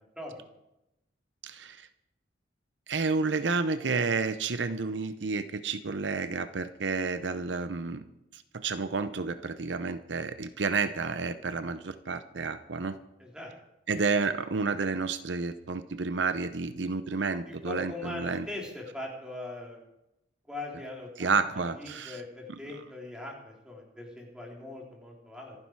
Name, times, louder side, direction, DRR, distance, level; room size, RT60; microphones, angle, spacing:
voice 1, 1.4-1.9 2.9-8.0 8.3-13.0 13.9-18.5 21.2-22.2, right 4 dB, 75° right, 11 dB, 0.8 m, -30 dB
voice 2, 13.2-13.5 17.6-19.8 20.5-21.4 21.8-25.6, left 2 dB, 5° right, -2 dB, 3.8 m, -41 dB
26.5 x 10.0 x 4.7 m, 0.89 s
head